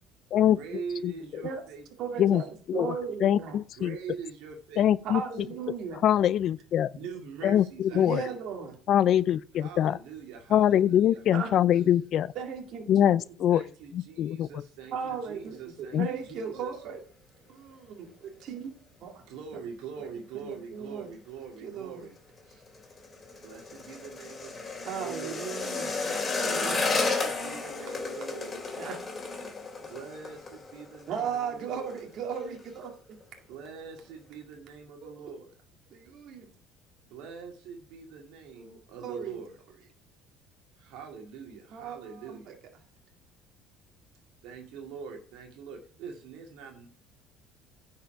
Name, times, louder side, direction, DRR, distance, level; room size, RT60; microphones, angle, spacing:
voice 1, 0.5-2.5 3.7-4.9 6.9-8.4 9.5-12.1 13.5-16.7 19.2-22.2 23.4-25.5 26.6-28.6 29.8-32.0 33.5-35.5 37.1-39.6 40.8-42.6 44.4-46.9, right 6 dB, 80° right, 2.4 m, -43 dB
voice 2, 1.2-1.6 2.0-3.6 5.0-6.0 7.9-8.8 11.3-11.5 12.3-13.1 14.9-17.0 17.5-18.7 19.0-19.2 20.0-20.1 20.3-21.1 21.6-22.0 24.8-26.8 28.7-29.0 31.1-33.2 35.0-35.2 35.9-36.5 38.6-39.4 41.7-42.5, right 7 dB, 55° right, 2.2 m, -37 dB
voice 3, 3.2-3.9 4.8-5.2 6.0-6.9 7.4-8.2 8.9-10.0 10.5-12.3 12.9-13.6 14.2-14.5 15.9-16.1, left 10 dB, 55° left, 0.4 m, -23 dB
sound 1, 22.4-31.4 31.7-32.0 32.3-32.8 33.2-33.3, left 3 dB, 25° left, 3.0 m, -33 dB
10.0 x 5.7 x 5.9 m
cardioid pair, 120°, 0 cm